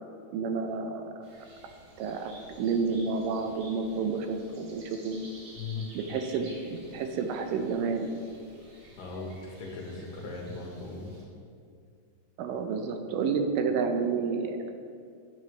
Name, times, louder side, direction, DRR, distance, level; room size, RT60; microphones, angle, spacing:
voice 1, 0.3-1.1 2.0-5.3 6.0-8.1 12.4-14.7, right 5 dB, 85° right, 6 dB, 2.3 m, -30 dB
sound 1, 1.2-11.2, right 1 dB, 55° right, 2.4 m, -53 dB
voice 2, 5.6-5.9 9.0-11.1, left 3 dB, 90° left, -1 dB, 2.9 m, -38 dB
10.5 x 7.8 x 3.2 m, 2.3 s
omnidirectional pair, 3.8 m